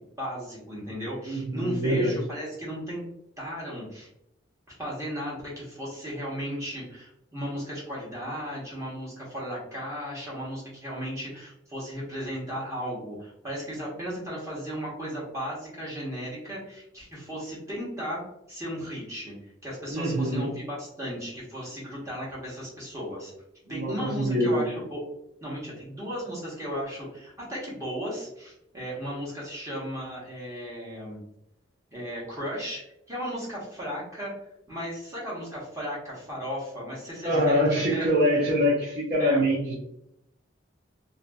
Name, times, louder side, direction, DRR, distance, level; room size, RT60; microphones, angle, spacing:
voice 1, 0.2-3.0 3.4-4.1 4.8-18.2 18.5-19.3 19.6-23.3 23.7-25.0 25.4-31.2 31.9-32.8 33.1-34.3 34.7-38.1 39.2-39.4, equal, 15° right, -6 dB, 1.0 m, -35 dB
voice 2, 1.3-2.1 19.9-20.5 23.7-24.7 37.2-39.7, equal, 45° right, -6 dB, 0.7 m, -24 dB
2.7 x 2.6 x 2.2 m, 0.81 s
head